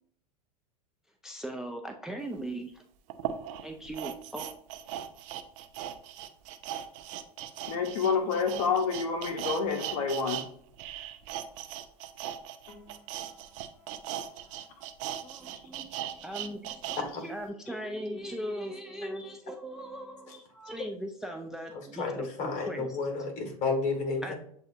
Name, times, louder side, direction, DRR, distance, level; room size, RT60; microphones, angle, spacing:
voice 1, 1.2-2.8 3.6-4.5 15.2-23.0 24.2-24.3, right 1 dB, ahead, 0.4 m, -39 dB
sound 1, 2.3-2.4 3.1-10.5 10.7-17.0 17.4-17.5, right 11 dB, 55° right, 0.6 m, -38 dB
voice 2, 7.7-10.4 12.7-12.9, left 5 dB, 65° left, 0.8 m, -29 dB
voice 3, 22.0-24.3, left 4 dB, 35° left, 1.7 m, -31 dB
7.7 x 2.7 x 2.5 m
hypercardioid pair, 100°, 20 cm